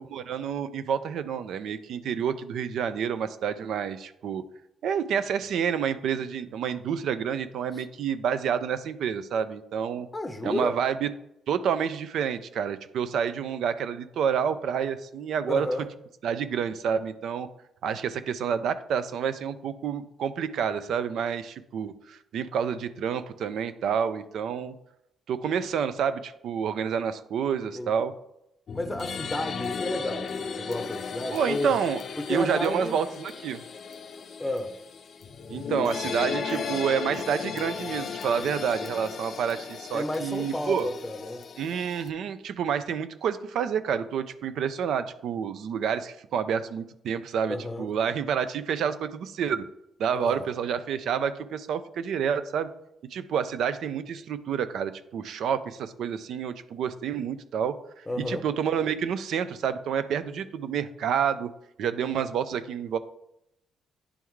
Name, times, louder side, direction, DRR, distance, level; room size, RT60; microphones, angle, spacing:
voice 1, 0.0-4.4 4.8-10.1 10.4-11.1 11.5-15.7 16.2-17.5 17.8-24.7 25.3-28.1 31.3-32.0 32.3-33.6 35.5-40.9 41.6-49.6 50.0-52.7 53.1-57.8 58.2-61.5 61.8-63.0, right 7 dB, 70° right, 0.4 m, -29 dB
voice 2, 10.1-10.8 15.5-15.9 27.7-28.1 28.7-31.7 32.2-33.0 34.4-34.7 38.3-38.4 39.9-41.4 47.5-47.9 50.2-50.5 58.1-58.4, left 1 dB, 15° left, 0.7 m, -32 dB
sound 1, 28.7-42.1, left 6 dB, 55° left, 0.5 m, -36 dB
9.9 x 3.5 x 3.1 m
cardioid pair, 90°, 0 cm